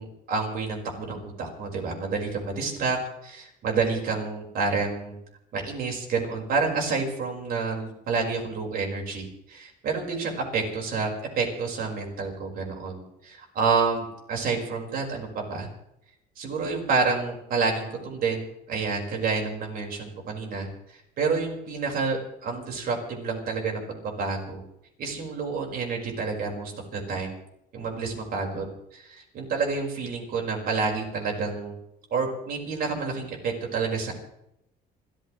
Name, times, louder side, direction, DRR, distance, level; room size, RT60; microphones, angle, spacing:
voice 1, 0.0-5.2 5.5-11.1 11.3-15.7 16.4-24.6 25.0-27.3 27.7-28.7 28.9-31.7 32.1-34.1, right 4 dB, 60° right, 1 dB, 5.1 m, -29 dB
28.0 x 14.0 x 3.2 m, 0.80 s
cardioid pair, 110°, 17 cm